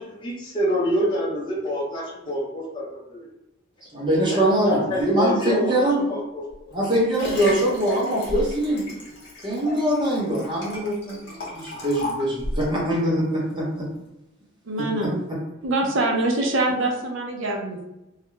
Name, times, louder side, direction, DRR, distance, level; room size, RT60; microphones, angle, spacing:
voice 1, 0.2-3.2 4.3-6.7, equal, 25° left, -5 dB, 0.7 m, -27 dB
voice 2, 3.9-6.0 6.7-8.9 9.4-11.2 11.5-13.7 15.0-15.1, right 1 dB, 25° right, -4 dB, 0.8 m, -23 dB
Liquid, 6.5-12.8 13.4-13.5, left 1 dB, 55° left, 0.8 m, -34 dB
voice 3, 14.7-15.2 15.6-17.8, right 2 dB, 70° right, 0 dB, 0.6 m, -24 dB
2.4 x 2.1 x 3.0 m, 0.91 s
head